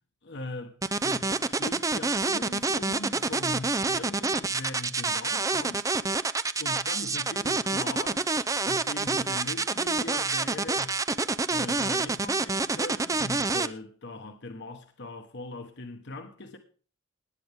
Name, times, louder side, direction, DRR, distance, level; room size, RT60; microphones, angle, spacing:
voice 1, 0.2-5.8 6.6-8.3 8.6-11.0 11.5-16.6, left 2 dB, 65° left, 1.5 m, -40 dB
sound 1, 0.8-13.7, right 3 dB, 15° right, 0.6 m, -27 dB
19.0 x 9.7 x 3.6 m
head